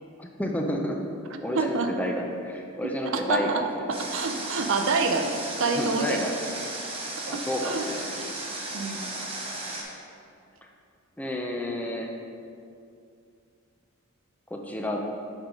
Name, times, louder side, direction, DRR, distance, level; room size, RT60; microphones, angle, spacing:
voice 1, 0.2-1.0 1.4-3.9 5.7-6.3 7.3-8.1 11.2-12.1 14.5-15.1, equal, 5° left, 1 dB, 0.4 m, -30 dB
voice 2, 1.6-1.9 2.8-3.6 3.9-6.2 7.3-7.8 8.7-9.1, right 3 dB, 60° right, 5 dB, 0.5 m, -27 dB
Water, 3.9-9.8, right 2 dB, 25° right, 0.9 m, -35 dB
7.2 x 3.8 x 5.1 m, 2.5 s
head